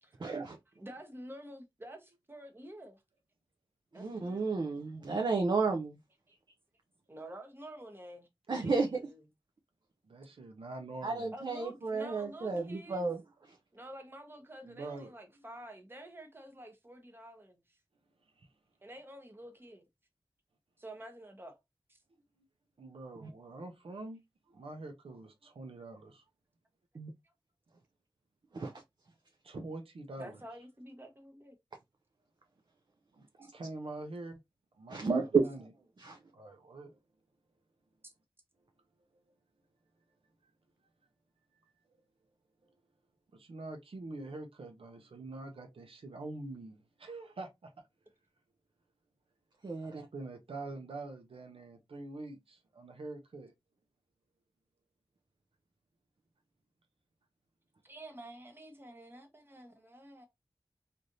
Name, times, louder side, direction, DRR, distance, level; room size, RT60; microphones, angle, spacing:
voice 1, 0.2-0.6 3.9-6.0 8.5-9.0 11.0-13.2 23.2-23.3 26.9-27.1 28.5-28.7 33.4-33.5 34.9-35.5 36.0-36.2 49.6-50.0, right 4 dB, 55° right, 0.5 m, -32 dB
voice 2, 0.8-3.0 3.9-4.5 7.1-9.2 11.3-13.1 13.7-17.8 18.8-19.9 20.8-21.6 21.9-22.0 27.2-27.3 30.2-31.6 33.4-33.5 38.0-38.1 57.8-60.3, right 1 dB, 25° right, 0.9 m, -49 dB
voice 3, 10.1-11.3 14.6-15.4 18.4-18.5 22.8-24.2 24.5-26.2 29.4-30.4 33.2-33.3 33.5-34.4 34.8-35.6 36.3-37.0 43.3-47.7 49.8-53.5, right 2 dB, 85° right, 0.7 m, -45 dB
3.2 x 2.7 x 2.6 m
wide cardioid pair, 80°, 9 cm